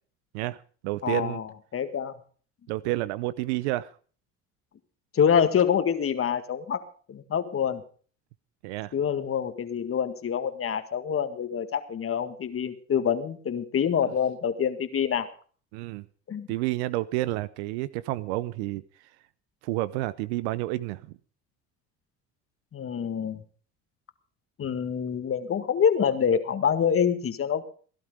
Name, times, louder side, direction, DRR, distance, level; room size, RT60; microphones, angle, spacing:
voice 1, 0.3-1.4 2.7-3.9 8.6-8.9 14.0-14.1 15.7-16.0 16.5-19.1 19.6-21.0, right 17 dB, 85° right, 0.7 m, -30 dB
voice 2, 1.0-1.4 1.7-2.2 5.1-6.8 7.1-7.8 8.9-15.3 16.3-16.5 22.7-23.4 24.6-27.6, left 7 dB, 40° left, 1.9 m, -26 dB
17.5 x 11.5 x 5.0 m
supercardioid pair, 75°, 32 cm